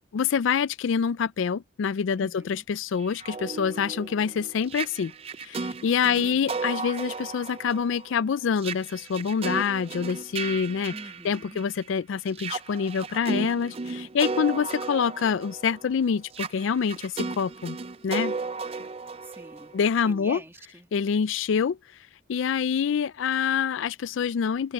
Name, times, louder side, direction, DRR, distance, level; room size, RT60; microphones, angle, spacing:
voice 1, 0.1-5.1 5.4-10.9 11.2-17.8 18.0-18.3 19.7-20.4 20.9-21.8 22.3-24.7, left 6 dB, 70° left, 0.4 m, -26 dB
voice 2, 2.2-2.6 6.2-6.5 10.9-11.6 19.2-19.7 20.0-20.9, right 1 dB, 10° right, 2.1 m, -45 dB
sound 1, 3.0-11.8 12.3-20.1, right 4 dB, 30° right, 0.4 m, -35 dB
open air
head